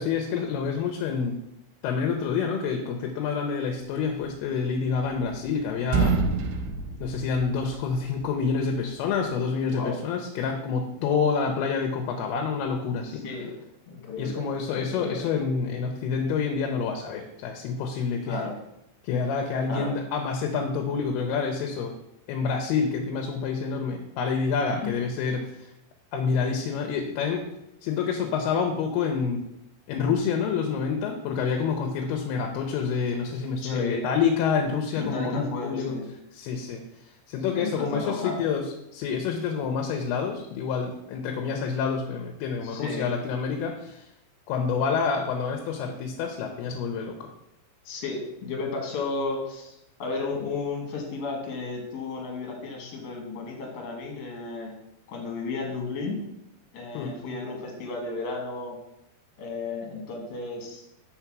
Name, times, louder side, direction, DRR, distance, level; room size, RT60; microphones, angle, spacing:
voice 1, 0.0-1.4 1.8-6.2 7.0-13.3 14.2-18.4 19.0-21.9 22.3-25.7 26.1-27.4 27.8-29.4 29.9-36.0 36.3-44.1 44.5-47.3 56.9-57.3, left 5 dB, 90° left, 3 dB, 2.7 m, -28 dB
sound 1, 4.7-5.5 5.8-8.0, right 4 dB, 85° right, 2.6 m, -27 dB
voice 2, 13.2-13.5 13.9-14.4 14.7-15.3 18.2-18.5 19.7-19.9 24.7-24.9 33.6-34.0 35.0-36.1 37.5-38.4 42.6-43.1 47.8-54.7 55.1-56.3 56.7-58.8 59.4-60.8, left 3 dB, 60° left, 1 dB, 1.8 m, -33 dB
5.6 x 3.9 x 5.9 m, 0.85 s
omnidirectional pair, 4.4 m